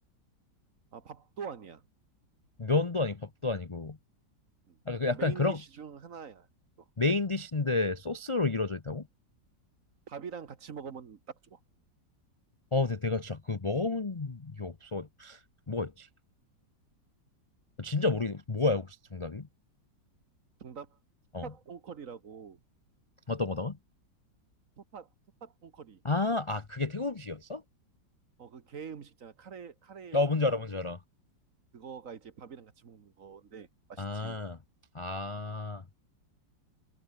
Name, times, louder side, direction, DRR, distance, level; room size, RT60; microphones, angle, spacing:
voice 1, 0.9-1.8 4.7-4.8 5.0-6.5 6.8-6.9 10.1-11.6 20.6-21.0 21.4-22.6 24.8-25.1 25.4-26.0 28.4-30.6 31.7-34.4, right 6 dB, 50° right, 1.5 m, -45 dB
voice 2, 2.6-4.0 4.9-5.6 7.0-9.1 12.7-15.4 15.7-16.1 17.8-19.5 21.3-21.5 23.3-23.8 26.0-27.6 30.1-31.0 34.0-34.6 34.9-35.8, left 3 dB, 35° left, 0.4 m, -30 dB
omnidirectional pair, 2.0 m